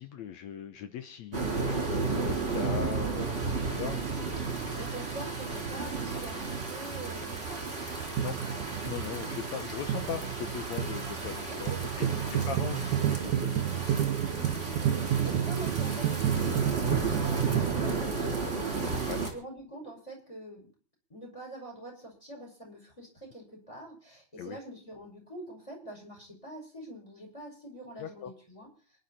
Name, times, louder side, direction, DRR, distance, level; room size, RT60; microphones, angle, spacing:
voice 1, 0.0-4.0 8.2-8.4 8.9-11.7 12.0-12.1 12.5-13.7 19.1-19.2 24.4-24.6 28.0-28.3, left 9 dB, 70° left, 9 dB, 2.1 m, -39 dB
sound 1, 1.3-19.3, right 4 dB, 20° right, 3.9 m, -33 dB
sound 2, 3.0-17.8, right 10 dB, 75° right, 2.4 m, -32 dB
voice 2, 3.6-4.1 4.7-7.7 11.5-12.3 14.3-15.0 15.2-20.7 21.1-28.7, right 1 dB, 10° left, 0 dB, 6.0 m, -45 dB
27.0 x 11.0 x 4.3 m, 0.40 s
omnidirectional pair, 3.5 m